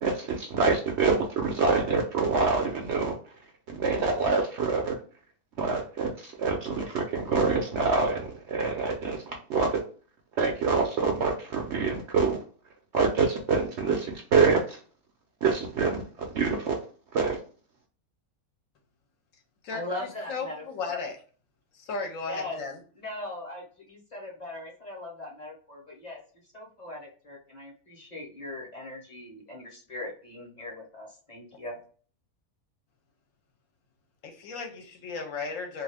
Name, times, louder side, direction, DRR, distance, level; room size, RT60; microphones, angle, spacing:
voice 1, 0.0-3.1 3.7-5.0 5.6-6.1 6.4-8.2 8.5-9.2 9.5-9.8 10.4-12.4 12.9-14.8 15.4-16.0 16.3-16.8 17.1-17.4, right 4 dB, 65° right, 2 dB, 0.7 m, -25 dB
voice 2, 19.7-21.0 22.2-22.6 23.0-26.2 26.5-31.8, left 2 dB, 35° left, -1 dB, 0.8 m, -39 dB
voice 3, 20.3-21.2 21.7-22.8 34.2-35.8, left 4 dB, 70° left, 4 dB, 0.9 m, -35 dB
2.5 x 2.5 x 3.4 m, 0.41 s
omnidirectional pair, 1.5 m